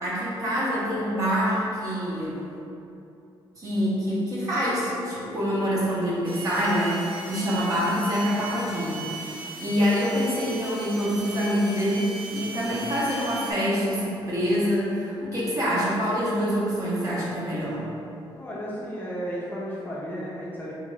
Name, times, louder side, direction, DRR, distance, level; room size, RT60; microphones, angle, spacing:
voice 1, 0.0-2.4 3.6-17.9, equal, 40° right, -8 dB, 0.9 m, -26 dB
sound 1, 6.3-13.5, right 3 dB, 70° right, 0.5 m, -38 dB
voice 2, 18.4-20.7, equal, 20° left, -7 dB, 0.5 m, -33 dB
3.6 x 2.4 x 3.2 m, 2.7 s
cardioid pair, 150°, 9 cm